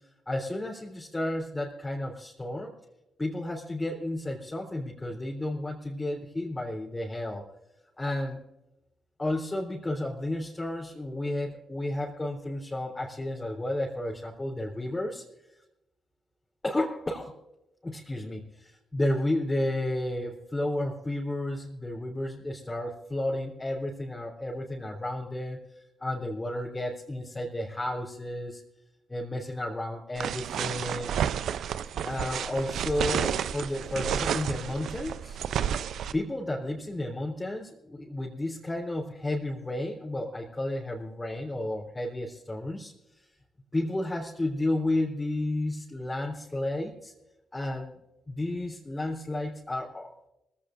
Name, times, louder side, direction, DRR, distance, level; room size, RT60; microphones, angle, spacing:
voice 1, 0.3-2.7 3.2-7.4 8.0-8.4 9.2-15.2 16.6-17.3 17.8-28.6 29.1-31.1 32.0-35.4 36.1-42.9 43.7-47.1 47.5-48.0 48.3-50.3, left 1 dB, 25° left, -3 dB, 3.6 m, -32 dB
sound 1, 30.2-36.1, right 9 dB, 70° right, 0.5 m, -31 dB
24.0 x 16.5 x 2.6 m, 0.92 s
hypercardioid pair, 45°, 0 cm